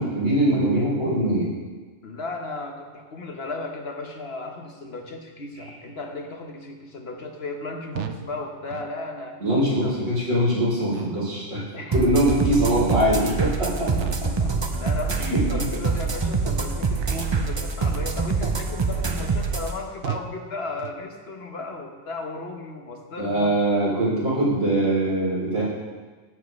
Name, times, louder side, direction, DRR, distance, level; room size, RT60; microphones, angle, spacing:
voice 1, 0.0-1.5 9.4-11.6 11.9-13.9 14.2-14.3 15.2-15.6 23.2-25.6, right 1 dB, 85° right, -8 dB, 4.1 m, -22 dB
voice 2, 2.0-9.4 9.8-9.9 11.7-11.9 14.8-23.5, left 3 dB, 55° left, 3 dB, 1.3 m, -35 dB
sound 1, 7.9-8.3 8.7-8.9 9.5-9.7 10.2-10.4 10.9-11.3 11.7-12.0 12.4-12.7 13.2-13.4 13.9-14.4 14.7-15.0 15.5-15.7 16.2-16.4 17.0-17.4 17.7-18.0 18.5-18.8 19.3-19.4 20.0-20.4 20.8-21.0, right 9 dB, 70° right, 0.9 m, -37 dB
sound 2, 11.9-19.7, right 4 dB, 35° right, 0.5 m, -25 dB
16.5 x 7.5 x 3.2 m, 1.4 s
omnidirectional pair, 1.3 m